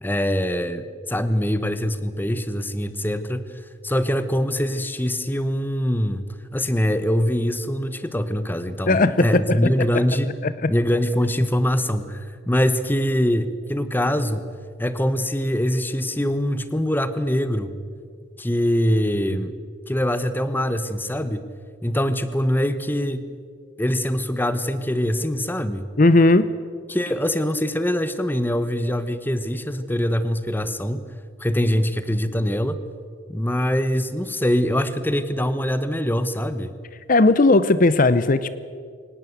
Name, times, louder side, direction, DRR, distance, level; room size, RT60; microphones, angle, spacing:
voice 1, 0.0-10.3 10.7-14.5 14.8-17.8 18.4-19.5 19.9-21.5 21.8-23.2 23.8-25.9 26.9-31.0 31.4-32.8 33.3-36.7, equal, 10° left, 12 dB, 1.1 m, -23 dB
voice 2, 8.9-9.9 10.4-10.7 26.0-26.5 37.1-38.5, left 2 dB, 45° left, 14 dB, 0.7 m, -17 dB
23.5 x 19.0 x 8.1 m, 2.1 s
head